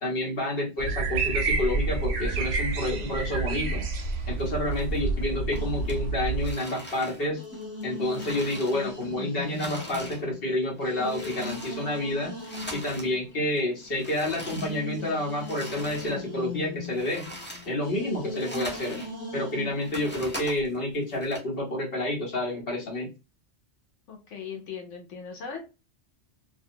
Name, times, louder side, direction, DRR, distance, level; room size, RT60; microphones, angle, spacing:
voice 1, 0.0-3.9 4.3-7.4 7.8-12.4 12.7-17.2 17.6-19.0 19.3-23.1, left 1 dB, 55° left, -1 dB, 1.2 m, -29 dB
sound 1, 0.8-6.5, right 3 dB, 65° right, 0.8 m, -29 dB
sound 2, 2.9-4.1 4.4-5.2 5.5-9.1 9.4-13.2 13.5-16.2 16.6-19.1 19.5-21.4, equal, 15° left, 0.4 m, -42 dB
sound 3, 5.6-6.8 7.4-13.8 14.3-20.3, left 3 dB, 15° right, 0.7 m, -39 dB
voice 2, 24.1-25.6, left 6 dB, 80° left, 2 dB, 1.1 m, -38 dB
2.5 x 2.3 x 2.7 m, 0.29 s
omnidirectional pair, 1.2 m